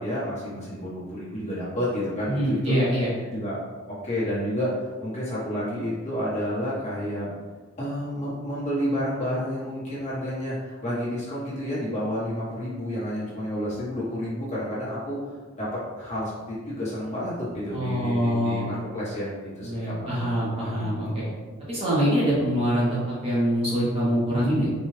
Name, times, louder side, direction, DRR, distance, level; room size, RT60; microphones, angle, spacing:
voice 1, 0.0-2.7 3.2-4.7 5.0-7.3 7.8-15.2 15.6-15.7 16.0-21.3, equal, 30° left, -9 dB, 1.4 m, -30 dB
voice 2, 2.3-3.1 17.7-18.6 19.6-21.2 21.7-24.7, equal, 25° right, -8 dB, 0.9 m, -24 dB
4.3 x 2.4 x 3.3 m, 1.4 s
head